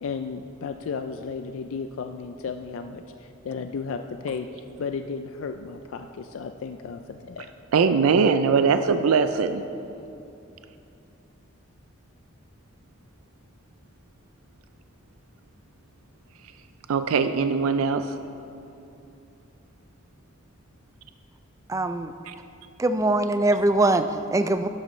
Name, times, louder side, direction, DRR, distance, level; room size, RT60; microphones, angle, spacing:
voice 1, 0.0-7.5, left 5 dB, 75° left, 6 dB, 0.4 m, -34 dB
voice 2, 7.7-9.6 16.9-18.1 22.3-22.4, right 5 dB, 90° right, 10 dB, 0.4 m, -21 dB
voice 3, 21.7-22.1 22.8-24.7, right 2 dB, 15° right, 9 dB, 0.3 m, -22 dB
11.5 x 11.0 x 3.2 m, 2.7 s
head